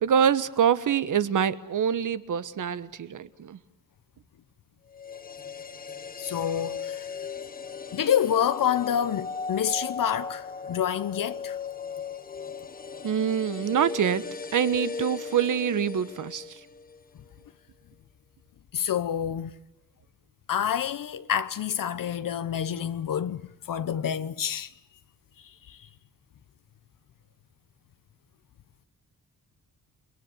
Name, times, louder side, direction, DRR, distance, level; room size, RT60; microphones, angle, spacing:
voice 1, 0.0-3.6 13.0-14.2 14.5-16.6, right 8 dB, 60° right, 1.3 m, -25 dB
sound 1, 4.9-17.0 17.3-17.4, left 5 dB, 25° left, 1.1 m, -37 dB
voice 2, 6.2-7.1 7.9-11.6 18.7-19.5 20.5-24.7 25.4-25.8, left 9 dB, 65° left, 0.9 m, -28 dB
29.5 x 21.0 x 8.4 m
cardioid pair, 110°, 36 cm